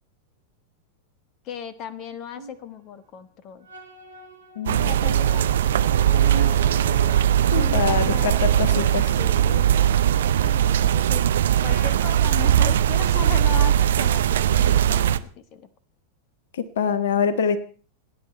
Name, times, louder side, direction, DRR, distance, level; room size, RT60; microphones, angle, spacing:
voice 1, 1.4-3.7 4.6-6.5 7.5-8.5 9.2-9.7 10.0-11.3 11.6-15.7, left 8 dB, 35° left, 14 dB, 1.3 m, -37 dB
sound 1, 2.3-2.6 3.6-11.8, right 4 dB, 85° right, 4.2 m, -38 dB
voice 2, 4.6-4.9 7.5-9.1 16.5-17.6, left 6 dB, 60° left, 14 dB, 1.2 m, -24 dB
sound 2, 4.7-15.2, right 10 dB, 60° right, 0.7 m, -20 dB
30.0 x 10.0 x 4.4 m, 0.40 s
figure-of-eight pair, 90°, 0 cm